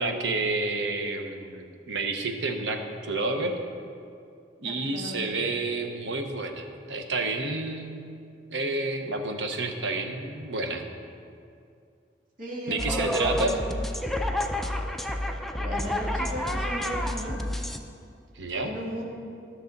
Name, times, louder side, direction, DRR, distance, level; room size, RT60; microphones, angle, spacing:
voice 1, 0.0-3.6 4.6-8.1 8.5-10.8 12.7-13.6 18.4-18.7, right 2 dB, 85° right, 5 dB, 0.9 m, -30 dB
voice 2, 4.6-5.2 12.4-13.7 15.6-17.4 18.6-19.0, equal, 50° right, -6 dB, 1.9 m, -36 dB
sound 1, 12.8-17.8, left 1 dB, ahead, 0.4 m, -29 dB
13.0 x 6.4 x 4.0 m, 2.4 s
head